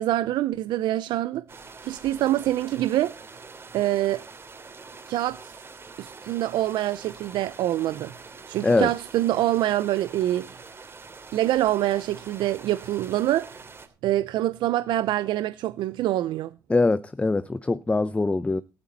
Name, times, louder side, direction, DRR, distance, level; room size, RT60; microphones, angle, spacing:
voice 1, 0.0-1.4 1.8-3.1 3.7-4.2 5.1-5.5 6.0-8.1 8.5-10.6 11.3-13.6 14.0-16.5, right 14 dB, 80° right, 0.6 m, -25 dB
sound 1, 1.5-13.9, right 4 dB, 30° right, 3.0 m, -45 dB
voice 2, 16.7-18.6, left 3 dB, 15° left, 0.6 m, -23 dB
14.0 x 12.0 x 4.1 m
cardioid pair, 90°, 8 cm